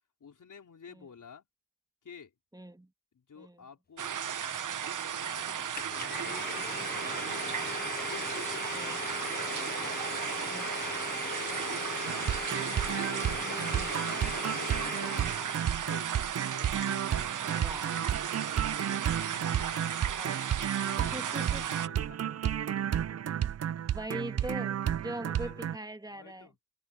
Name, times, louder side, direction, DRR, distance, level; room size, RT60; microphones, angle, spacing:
voice 1, 0.2-1.4 2.0-2.3 3.1-7.7 8.1-12.2 12.8-15.2 15.7-18.4 19.1-20.3 20.8-22.8 25.2-25.7 26.1-26.5, left 6 dB, 65° left, 4.1 m, -52 dB
voice 2, 2.5-2.9 3.4-3.6 8.7-9.0 10.5-10.7 13.5-13.9 17.5-17.9 20.2-20.4 21.1-21.7 23.9-26.5, right 1 dB, 10° right, 1.9 m, -41 dB
sound 1, 4.0-21.9, right 8 dB, 70° right, 0.9 m, -35 dB
Domestic sounds home sounds, 5.8-15.7, left 5 dB, 30° left, 0.6 m, -39 dB
sound 2, 12.1-25.8, right 10 dB, 50° right, 0.5 m, -32 dB
open air
cardioid pair, 70°, 33 cm